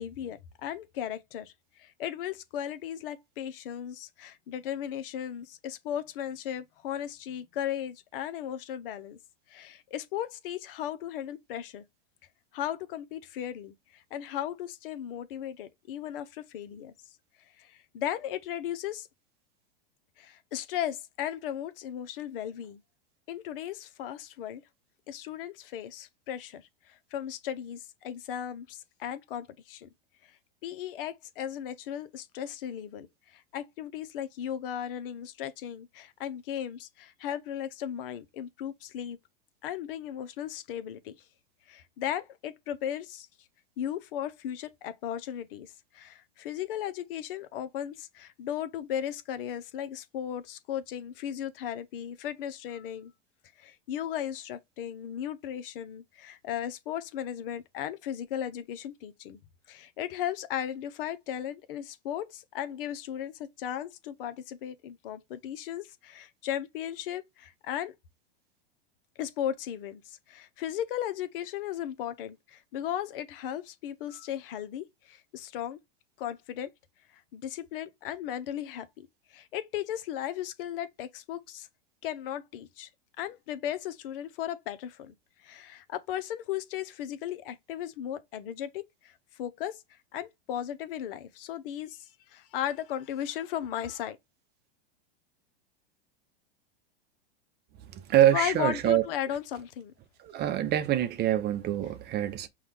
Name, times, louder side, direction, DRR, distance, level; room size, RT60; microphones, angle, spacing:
voice 1, 0.0-9.2 9.5-11.8 12.5-16.9 17.6-19.1 20.2-22.8 23.3-24.6 25.1-29.9 30.2-30.4 30.6-39.2 39.6-41.1 41.7-43.3 43.8-53.1 53.6-59.4 59.7-67.9 69.2-75.8 76.2-76.7 77.3-81.7 82.0-82.9 83.2-94.2 98.3-99.9, left 10 dB, 65° left, 0.8 m, -36 dB
voice 2, 98.1-99.0 100.3-102.5, right 12 dB, 35° right, 0.7 m, -25 dB
5.6 x 2.4 x 3.4 m
hypercardioid pair, 105°, 30 cm